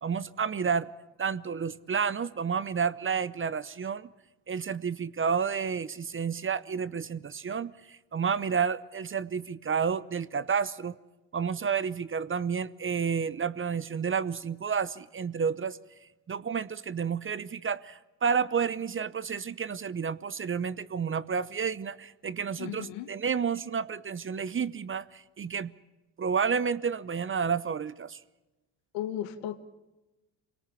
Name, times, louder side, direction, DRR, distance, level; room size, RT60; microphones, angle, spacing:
voice 1, 0.0-0.9 1.2-4.1 4.5-10.9 11.3-15.8 16.3-25.7 26.2-28.2, right 6 dB, 25° right, 18 dB, 0.7 m, -30 dB
voice 2, 22.6-23.1 28.9-29.6, left 11 dB, 75° left, 10 dB, 1.6 m, -35 dB
25.5 x 18.5 x 7.0 m, 1.1 s
hypercardioid pair, 65°, 47 cm